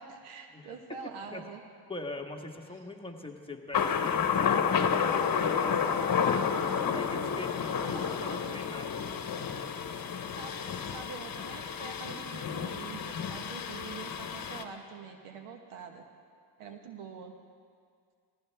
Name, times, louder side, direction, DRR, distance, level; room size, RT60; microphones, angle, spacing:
voice 1, 0.0-1.6 7.9-8.6 10.3-10.6 10.8-16.0 16.6-17.3, right 5 dB, 90° right, 4 dB, 1.5 m, -45 dB
voice 2, 0.5-1.4 1.9-6.1 6.6-8.0 8.2-9.0 16.6-16.7, left 2 dB, 10° left, 2 dB, 1.4 m, -43 dB
Thunder, 3.7-14.6, left 7 dB, 45° left, 1.1 m, -30 dB
19.0 x 15.5 x 3.5 m, 2.1 s
supercardioid pair, 70°, 50 cm